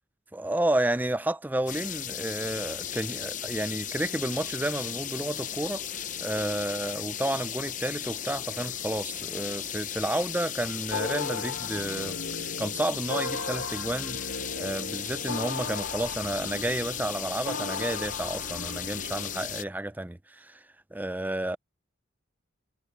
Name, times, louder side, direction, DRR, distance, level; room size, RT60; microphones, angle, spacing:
voice 1, 0.3-5.8 6.2-20.6 20.9-21.6, right 1 dB, 10° right, 0.5 m, -31 dB
sound 1, 1.7-19.6, left 9 dB, 40° left, 0.8 m, -36 dB
sound 2, 10.9-19.6, left 3 dB, 70° left, 1.6 m, -37 dB
head